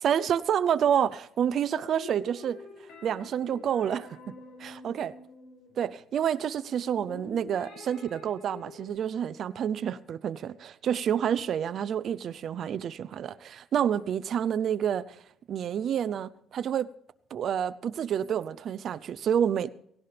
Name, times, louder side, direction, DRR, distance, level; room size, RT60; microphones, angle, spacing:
voice 1, 0.0-2.6 3.0-5.1 5.8-15.2 15.5-16.9 17.3-19.7, right 9 dB, 50° right, 0.6 m, -29 dB
sound 1, 1.7-5.9 7.0-8.9, left 3 dB, 80° left, 5.9 m, -47 dB
17.5 x 17.0 x 3.4 m
cardioid pair, 150°, 0 cm